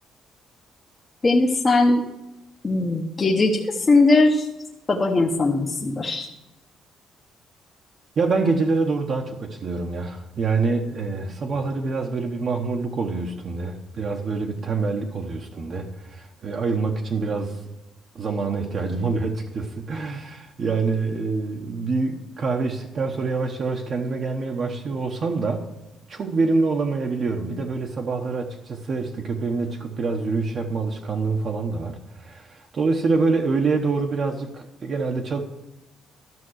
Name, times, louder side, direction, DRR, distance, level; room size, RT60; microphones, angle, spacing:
voice 1, 1.2-2.0 2.6-4.5 4.9-6.3, left 2 dB, 20° left, 0 dB, 0.9 m, -19 dB
voice 2, 8.2-17.6 18.1-25.7 26.1-35.4, right 4 dB, 40° right, 2 dB, 1.0 m, -26 dB
12.5 x 6.7 x 6.4 m, 0.97 s
cardioid pair, 160°, 0 cm